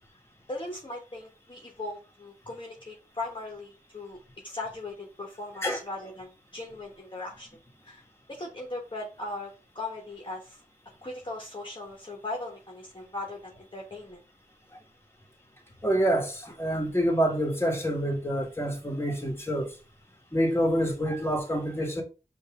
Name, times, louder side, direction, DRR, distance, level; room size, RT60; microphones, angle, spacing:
voice 1, 0.5-4.2 4.4-7.5 7.8-8.0 8.3-9.5 9.7-10.6 11.0-14.2, left 2 dB, 35° left, 1.2 m, -38 dB
voice 2, 15.8-19.7 20.3-22.0, equal, 15° left, 1.6 m, -27 dB
5.4 x 2.7 x 3.6 m
wide cardioid pair, 50°, 14 cm